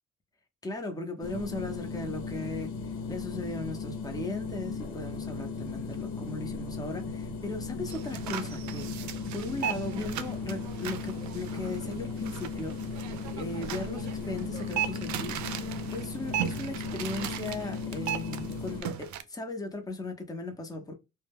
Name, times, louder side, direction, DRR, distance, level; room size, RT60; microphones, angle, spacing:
voice 1, 0.6-20.9, left 2 dB, 10° left, 0.6 m, -38 dB
sound 1, 1.2-18.8, left 4 dB, 85° left, 1.0 m, -37 dB
sound 2, 7.9-19.2, right 10 dB, 70° right, 0.4 m, -37 dB
2.1 x 2.1 x 3.3 m
cardioid pair, 90°, 30 cm